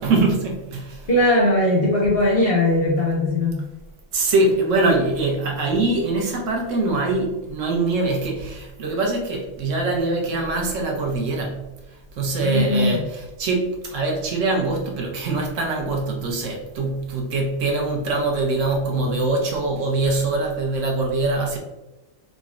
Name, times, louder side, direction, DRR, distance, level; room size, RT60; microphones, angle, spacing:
voice 1, 0.0-1.1 4.1-21.6, right 2 dB, 70° right, 1 dB, 1.0 m, -23 dB
voice 2, 1.1-3.6 12.4-13.0, left 1 dB, 60° left, -2 dB, 0.7 m, -19 dB
3.7 x 2.1 x 2.4 m, 1.0 s
omnidirectional pair, 1.4 m